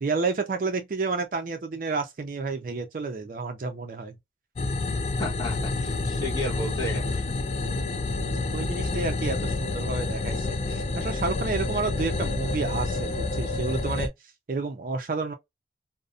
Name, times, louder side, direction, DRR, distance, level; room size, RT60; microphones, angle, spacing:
voice 1, 0.0-4.2 8.5-14.1 14.5-15.3, right 4 dB, 50° right, 0.4 m, -30 dB
sound 1, 4.6-14.1, left 3 dB, 35° left, 0.3 m, -28 dB
voice 2, 5.2-7.2, left 1 dB, 20° left, 1.0 m, -33 dB
2.5 x 2.1 x 2.4 m
head